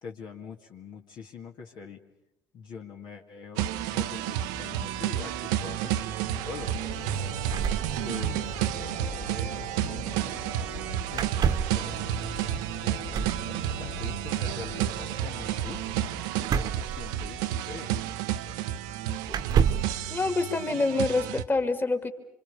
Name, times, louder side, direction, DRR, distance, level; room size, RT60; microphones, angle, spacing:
voice 1, 0.0-2.0 2.5-6.1 6.4-6.8 8.0-10.4 11.1-17.9, left 5 dB, 55° left, 1 dB, 2.2 m, -44 dB
sound 1, 3.6-21.4, right 12 dB, 70° right, 1.0 m, -31 dB
sound 2, 6.2-16.1, right 2 dB, 80° left, 4.7 m, -41 dB
sound 3, 7.5-8.6 8.8-8.9 9.1-9.3 11.1-11.8 13.1-13.5 16.4-17.6 18.5-18.6 19.3-20.0, right 7 dB, 45° right, 1.4 m, -28 dB
voice 2, 20.1-22.1, left 3 dB, 20° left, 6 dB, 2.6 m, -26 dB
27.5 x 26.0 x 6.9 m, 0.81 s
figure-of-eight pair, 55°, 9 cm